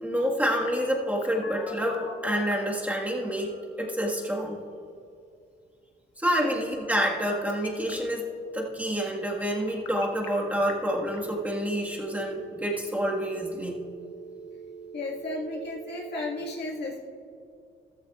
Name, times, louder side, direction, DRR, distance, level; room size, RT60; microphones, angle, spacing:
voice 1, 0.0-3.5 3.8-4.6 6.2-8.2 8.5-13.8, equal, 10° right, -2 dB, 1.7 m, -28 dB
Telephone, 0.6-2.7 3.2-4.2 6.2-7.2 7.5-7.9 9.6-10.3 10.7-10.8 11.1-16.2, equal, 85° left, 1.4 m, -43 dB
voice 2, 14.9-17.1, left 2 dB, 55° left, -2 dB, 1.9 m, -34 dB
14.0 x 13.5 x 2.5 m, 2.4 s
cardioid pair, 90°, 20 cm